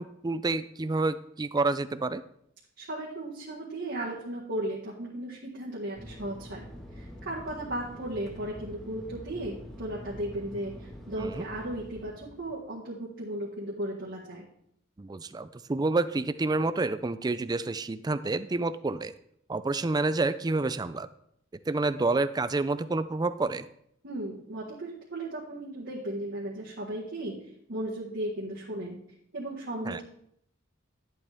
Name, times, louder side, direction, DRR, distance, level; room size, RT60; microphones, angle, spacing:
voice 1, 0.0-2.2 11.2-11.4 15.0-19.1 19.5-21.1 21.7-23.7 29.9-30.0, right 3 dB, 20° right, 13 dB, 0.4 m, -29 dB
voice 2, 2.8-6.6 6.9-14.5 24.0-27.3 27.7-29.0 29.3-30.0, right 1 dB, 60° right, -5 dB, 1.7 m, -36 dB
Fixed-wing aircraft airplane, 5.9-12.6, equal, ahead, 1.5 m, -45 dB
11.0 x 8.1 x 3.5 m, 0.72 s
head